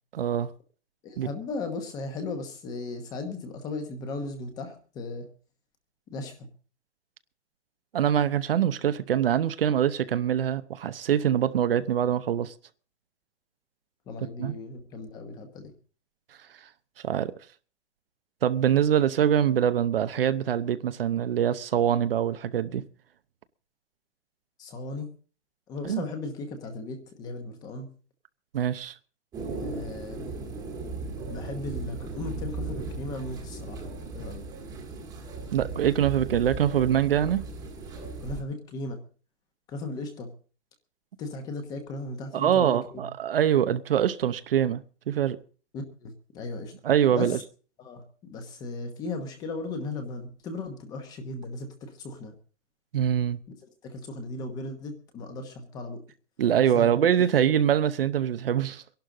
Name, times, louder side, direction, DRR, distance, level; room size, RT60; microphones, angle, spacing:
voice 1, 0.1-0.5 1.2-1.3 7.9-12.5 14.4-14.5 17.0-17.3 18.4-22.8 25.8-26.0 28.5-28.9 35.5-37.4 42.3-45.4 46.8-47.4 52.9-53.4 56.4-59.0, right 9 dB, 55° right, 0.9 m, -24 dB
voice 2, 1.0-5.3 6.1-6.5 14.1-15.7 24.6-25.1 25.7-27.9 29.6-30.3 31.3-34.5 38.2-39.0 39.7-40.3 41.2-43.1 45.7-46.7 47.1-47.4 47.8-48.0 48.3-52.3 53.8-56.0 56.7-56.9, left 3 dB, 10° left, 1.1 m, -36 dB
sound 1, 29.3-38.4, right 3 dB, 10° right, 1.5 m, -37 dB
23.0 x 11.5 x 3.8 m
hypercardioid pair, 170°, 35 cm